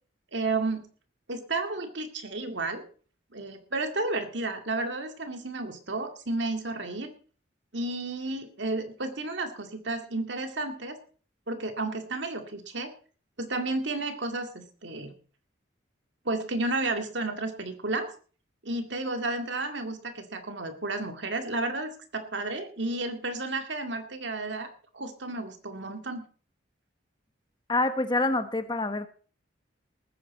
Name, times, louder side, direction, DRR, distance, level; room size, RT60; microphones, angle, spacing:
voice 1, 0.3-0.8 1.3-2.8 3.3-7.1 7.7-11.0 11.5-12.9 13.4-15.1 16.3-18.1 18.6-26.2, right 2 dB, 65° right, 6 dB, 2.1 m, -32 dB
voice 2, 27.7-29.1, left 2 dB, 25° left, 9 dB, 1.1 m, -26 dB
19.5 x 9.4 x 4.2 m, 0.41 s
head